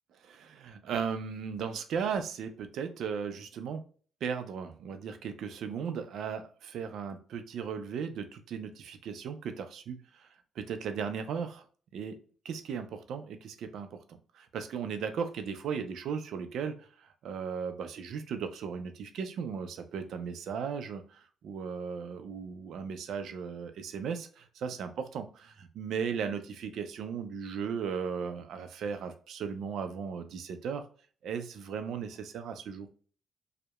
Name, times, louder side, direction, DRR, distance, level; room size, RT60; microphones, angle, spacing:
voice 1, 0.2-3.8 4.2-10.3 10.6-11.6 11.9-12.2 12.4-14.0 14.3-16.9 17.2-30.9 31.2-32.9, right 6 dB, 75° right, 8 dB, 0.4 m, -36 dB
2.8 x 2.0 x 2.2 m, 0.42 s
cardioid pair, 90°, 0 cm